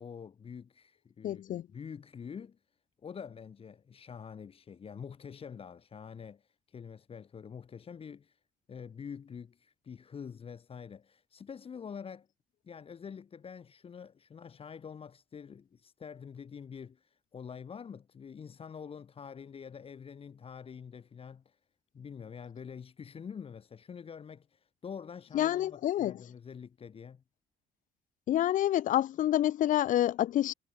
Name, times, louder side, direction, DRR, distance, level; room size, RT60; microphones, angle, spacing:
voice 1, 0.0-2.6 3.0-8.4 8.7-12.3 12.6-21.6 21.9-27.2, left 7 dB, 35° left, 1.2 m, -46 dB
voice 2, 1.2-1.6 25.3-26.1 28.3-30.5, left 12 dB, 50° left, 0.5 m, -28 dB
cardioid pair, 110°, 17 cm